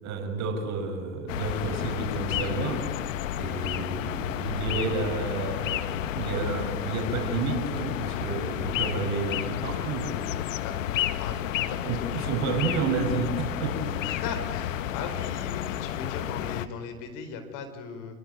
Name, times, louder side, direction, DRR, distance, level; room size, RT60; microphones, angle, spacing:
voice 1, 0.0-2.8 3.4-10.1 11.8-14.0, right 4 dB, 40° right, 3 dB, 5.5 m, -30 dB
Marmotte + Torrent, 1.3-16.7, left 11 dB, 65° left, 1.4 m, -31 dB
voice 2, 11.2-12.3 14.0-18.2, left 5 dB, 45° left, 8 dB, 4.7 m, -38 dB
26.5 x 23.0 x 9.5 m, 1.4 s
figure-of-eight pair, 90°, 42 cm